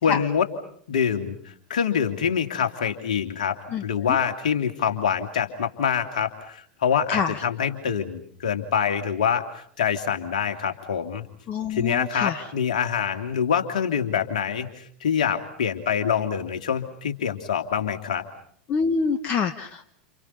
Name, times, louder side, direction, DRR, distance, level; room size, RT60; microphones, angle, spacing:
voice 1, 0.0-0.5 0.9-1.4 1.7-11.2 11.7-18.2, left 7 dB, 65° left, 6 dB, 2.8 m, -25 dB
voice 2, 7.1-7.4 11.5-12.4 18.7-19.9, left 5 dB, 40° left, 8 dB, 1.5 m, -26 dB
29.5 x 29.5 x 5.6 m, 0.64 s
figure-of-eight pair, 80°, 4 cm